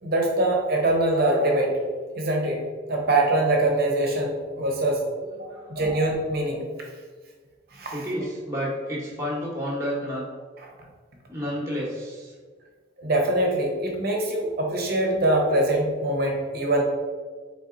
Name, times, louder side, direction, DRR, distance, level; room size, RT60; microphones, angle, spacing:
voice 1, 0.0-1.7 2.1-2.6 2.9-5.0 5.4-6.6 7.7-8.0 10.6-10.7 13.0-16.8, right 1 dB, 55° right, 0 dB, 0.8 m, -23 dB
voice 2, 5.5-5.8 7.9-10.3 11.3-12.3, equal, 15° right, -4 dB, 1.1 m, -30 dB
4.1 x 3.4 x 3.7 m, 1.5 s
head